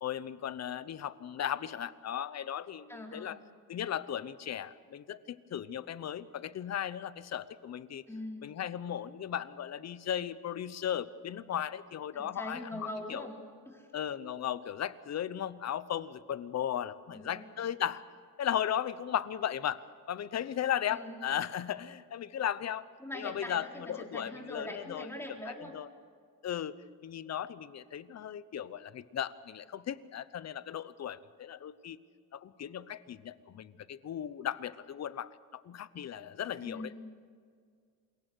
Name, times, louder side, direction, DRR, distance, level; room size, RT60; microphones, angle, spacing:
voice 1, 0.0-3.4 3.7-8.0 8.4-13.3 13.9-18.0 18.4-22.9 23.1-25.1 25.4-25.9 26.4-26.8 27.0-32.0 32.3-36.9, left 10 dB, 45° left, 16 dB, 0.9 m, -36 dB
voice 2, 2.9-3.4 8.1-8.6 12.1-13.9 17.1-17.4 20.9-21.2 23.0-25.8 36.6-37.1, left 1 dB, 5° left, 0 dB, 4.2 m, -43 dB
27.5 x 22.5 x 6.3 m, 2.1 s
cardioid pair, 120°, 37 cm